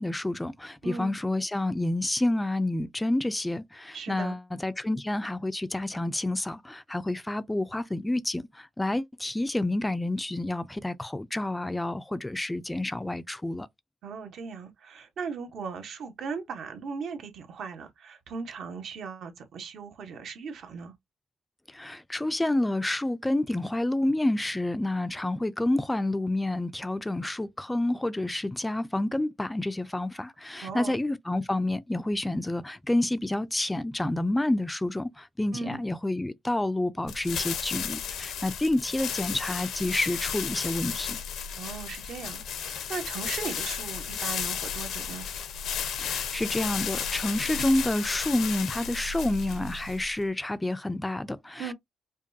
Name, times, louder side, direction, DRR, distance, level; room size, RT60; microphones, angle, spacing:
voice 1, 0.0-13.7 21.7-41.2 46.0-51.7, left 1 dB, 10° left, 0.4 m, -29 dB
voice 2, 3.9-4.3 14.0-20.9 30.6-31.0 35.5-35.8 41.6-45.3 51.6-51.7, right 5 dB, 65° right, 1.0 m, -38 dB
sound 1, 37.1-50.2, left 7 dB, 75° left, 0.7 m, -34 dB
5.1 x 2.3 x 2.6 m
cardioid pair, 90°, 0 cm